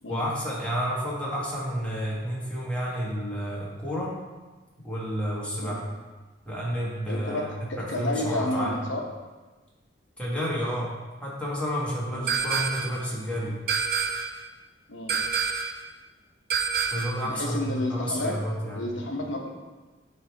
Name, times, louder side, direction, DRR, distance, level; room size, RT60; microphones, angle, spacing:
voice 1, 0.1-4.2 4.8-5.8 6.4-8.8 10.2-13.6 16.9-18.8, equal, 5° left, -6 dB, 1.4 m, -30 dB
voice 2, 7.1-9.0 12.1-12.3 14.9-15.2 17.2-18.4 18.7-19.5, left 1 dB, 75° left, 1 dB, 0.9 m, -31 dB
sound 1, 12.3-13.0 13.7-14.4 15.1-15.8 16.5-17.2, right 6 dB, 50° right, 0.5 m, -27 dB
8.5 x 3.4 x 4.5 m, 1.2 s
head